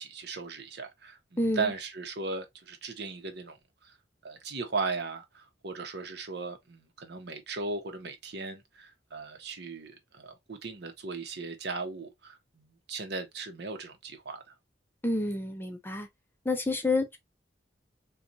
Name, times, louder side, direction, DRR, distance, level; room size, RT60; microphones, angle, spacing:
voice 1, 0.0-3.6 3.8-3.9 4.2-14.5, right 4 dB, 65° right, 0.8 m, -37 dB
voice 2, 1.4-1.7 15.0-16.1 16.5-17.2, left 2 dB, 10° left, 0.5 m, -29 dB
4.2 x 2.3 x 2.6 m
head